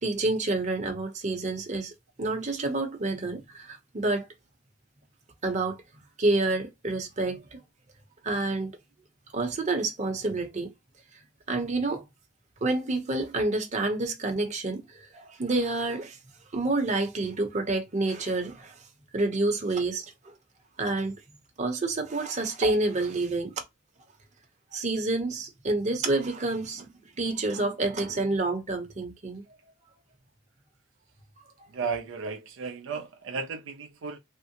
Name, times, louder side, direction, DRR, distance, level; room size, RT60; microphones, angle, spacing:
voice 1, 0.0-1.9 2.2-4.3 5.4-5.8 6.2-7.6 8.2-8.7 9.3-10.7 11.5-12.0 12.6-16.2 16.5-18.8 19.1-20.3 20.8-21.2 21.6-23.5 24.7-26.9 27.2-29.4, right 2 dB, 40° right, 0.8 m, -28 dB
voice 2, 31.7-34.2, right 5 dB, 75° right, 0.4 m, -34 dB
3.5 x 2.0 x 2.8 m
head